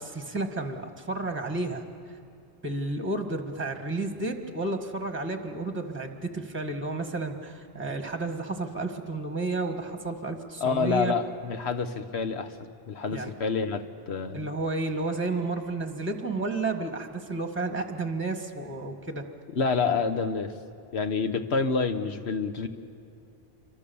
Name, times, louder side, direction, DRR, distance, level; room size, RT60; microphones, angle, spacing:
voice 1, 0.0-1.8 2.6-11.1 13.1-13.3 14.3-19.2, right 3 dB, 10° right, 6 dB, 1.6 m, -31 dB
voice 2, 10.6-12.5 12.9-14.5 19.5-20.5 20.9-22.7, left 5 dB, 70° left, 8 dB, 1.4 m, -28 dB
27.5 x 23.5 x 7.1 m, 2.5 s
omnidirectional pair, 1.1 m